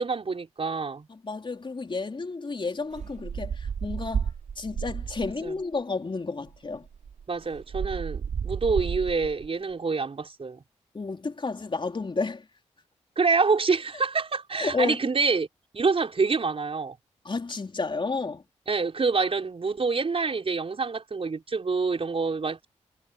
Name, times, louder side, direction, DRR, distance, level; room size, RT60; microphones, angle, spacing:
voice 1, 0.0-1.1 5.4-5.5 7.3-10.6 13.2-15.5 15.7-17.0 18.7-22.7, right 4 dB, 50° right, 5.5 m, -26 dB
voice 2, 1.1-6.9 10.9-12.5 14.6-15.0 17.2-18.4, left 4 dB, 40° left, 3.9 m, -31 dB
sound 1, 2.9-5.5 6.5-6.6 6.8-9.5, right 7 dB, 70° right, 5.7 m, -32 dB
cardioid pair, 50°, 13 cm